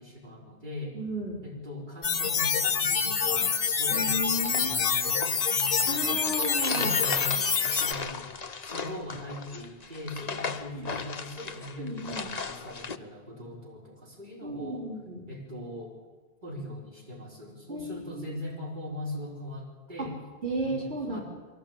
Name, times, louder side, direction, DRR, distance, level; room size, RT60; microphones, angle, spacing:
voice 1, 0.0-1.0 1.4-5.3 5.9-6.3 6.7-7.3 7.8-8.3 8.6-14.9 15.3-16.0 16.4-20.2 20.6-21.2, left 1 dB, 45° right, -2 dB, 4.5 m, -40 dB
voice 2, 0.9-1.4 3.9-4.7 5.8-7.0 10.7-10.9 11.8-12.3 14.4-15.2 17.7-18.3 20.0-20.1 20.4-21.2, right 1 dB, 70° right, -3 dB, 4.4 m, -34 dB
sound 1, 2.0-7.9, left 6 dB, 55° left, 1.2 m, -26 dB
sound 2, 4.3-13.0, left 5 dB, 40° left, 1.0 m, -37 dB
23.5 x 16.0 x 8.8 m, 1.4 s
omnidirectional pair, 1.1 m